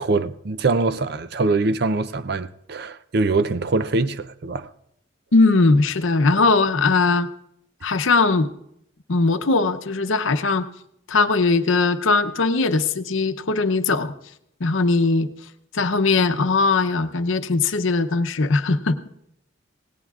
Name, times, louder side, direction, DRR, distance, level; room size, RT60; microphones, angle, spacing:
voice 1, 0.0-4.7, right 3 dB, 55° right, 0.5 m, -23 dB
voice 2, 5.3-7.3 7.8-8.5 9.1-10.7 11.1-14.1 14.6-15.3 15.7-19.0, left 3 dB, 80° left, 0.7 m, -19 dB
25.5 x 18.5 x 2.4 m
head